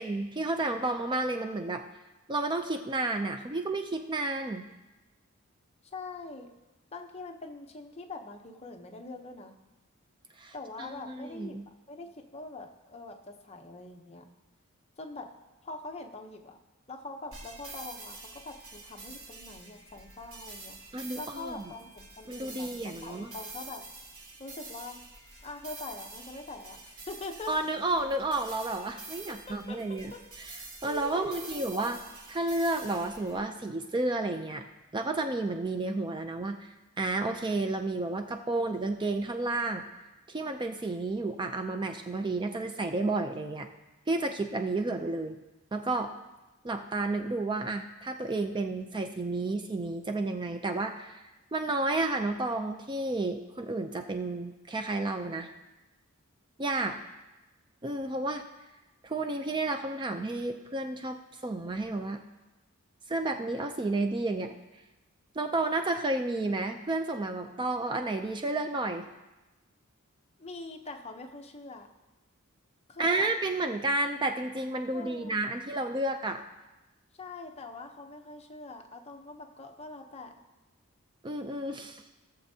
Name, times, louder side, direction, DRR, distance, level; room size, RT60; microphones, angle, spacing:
voice 1, 0.0-1.8 2.3-4.7 10.4-11.6 20.9-21.6 22.3-23.3 27.5-30.1 30.8-32.0 32.3-34.6 34.9-39.8 40.3-43.7 44.1-45.4 45.7-46.1 46.6-51.2 51.5-55.5 56.6-56.9 57.8-58.4 59.0-61.2 61.4-62.2 63.1-64.5 65.4-69.1 73.0-76.4 81.2-82.0, right 2 dB, 20° right, 6 dB, 0.4 m, -31 dB
voice 2, 5.9-6.5 6.9-9.5 10.5-14.3 15.0-15.3 15.6-16.6 16.9-23.9 24.4-25.0 25.4-27.5 29.3-30.2 30.9-32.0 56.9-57.0 70.4-71.9 72.9-73.3 74.9-75.4 77.2-80.3, left 3 dB, 30° left, 3 dB, 0.8 m, -43 dB
sound 1, 17.3-33.4, right 3 dB, 85° right, 2.5 m, -47 dB
17.5 x 7.0 x 2.8 m, 1.1 s
head